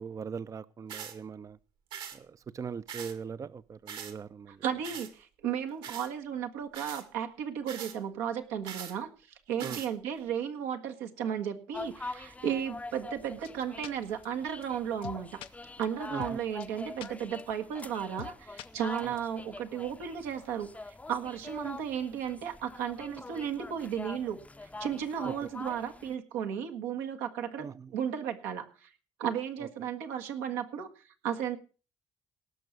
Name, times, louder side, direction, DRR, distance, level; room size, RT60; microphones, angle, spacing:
voice 1, 0.0-1.6 2.1-4.6 9.6-9.8 16.1-16.2 19.0-19.1 25.2-25.3 27.6-27.9, right 6 dB, 40° right, 0.6 m, -40 dB
sound 1, 0.9-1.2 1.9-2.2 2.9-3.2 3.9-4.1 4.8-5.1 5.8-6.1 6.7-7.0 7.7-8.0 8.7-8.9 9.6-9.9, right 8 dB, 70° right, 2.0 m, -41 dB
voice 2, 4.5-9.1 9.5-15.4 15.8-28.9 29.2-31.6, right 8 dB, 90° right, 1.6 m, -34 dB
sound 2, 11.7-26.2, left 2 dB, 15° left, 0.7 m, -44 dB
sound 3, 13.4-13.5 13.8-13.9 14.2-14.3 14.6-14.7 15.0-15.5 15.8-15.9 16.2-16.3 16.6-16.7 17.0-17.1 17.4-17.5 17.8-17.9 18.2-18.3 18.6-19.2, left 12 dB, 75° left, 0.8 m, -43 dB
18.0 x 6.1 x 6.5 m
supercardioid pair, 60°, 9 cm